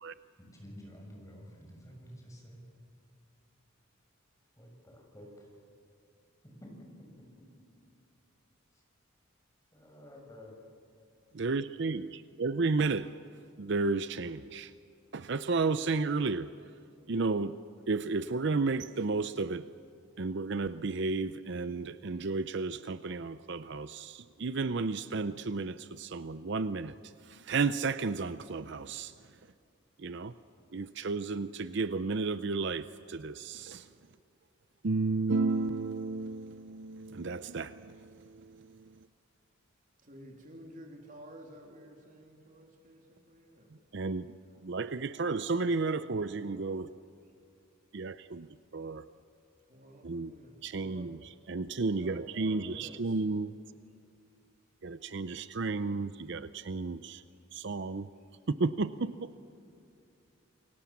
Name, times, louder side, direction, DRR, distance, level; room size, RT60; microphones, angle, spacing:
voice 1, 0.6-2.6 4.6-5.5 6.4-6.7 8.7-8.8 9.7-10.6, equal, 15° left, 6.6 m, -50 dB
voice 2, 11.3-13.1 13.6-14.7 15.1-16.5 17.1-17.5 17.9-19.6 20.2-26.9 27.3-29.1 30.0-30.3 30.7-33.9 34.8-38.8 43.9-44.3 44.6-46.9 47.9-48.5 48.7-49.0 50.0-50.3 50.6-51.2 51.5-53.5 54.8-57.2 57.5-58.1 58.6-59.3, right 3 dB, 60° right, 0.6 m, -32 dB
voice 3, 40.0-43.7 49.7-51.2 52.0-53.2, equal, 40° right, 3.3 m, -52 dB
28.5 x 23.5 x 7.3 m
head